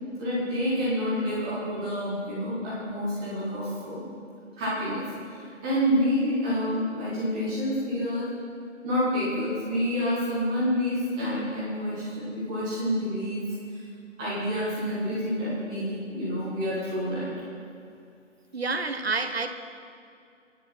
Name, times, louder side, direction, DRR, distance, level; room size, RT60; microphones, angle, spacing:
voice 1, 0.2-4.0 4.6-5.0 5.4-8.3 8.8-13.4 14.2-17.3, equal, 5° right, -9 dB, 0.9 m, -28 dB
voice 2, 18.5-19.5, right 3 dB, 50° right, 8 dB, 1.2 m, -28 dB
24.0 x 9.7 x 4.2 m, 2.4 s
figure-of-eight pair, 155°, 39 cm